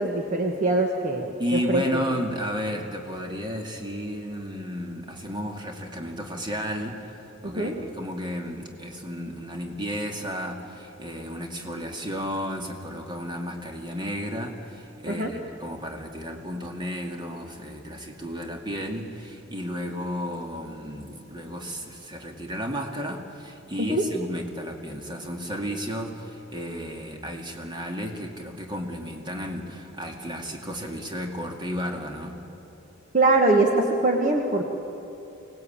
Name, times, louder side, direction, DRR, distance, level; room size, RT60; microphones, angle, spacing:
voice 1, 0.0-2.0 7.4-7.7 15.1-15.3 23.9-24.0 33.1-34.6, right 2 dB, 40° right, 2 dB, 1.5 m, -23 dB
voice 2, 1.4-32.4, equal, 20° right, 2 dB, 2.2 m, -33 dB
24.0 x 19.0 x 8.8 m, 2.9 s
head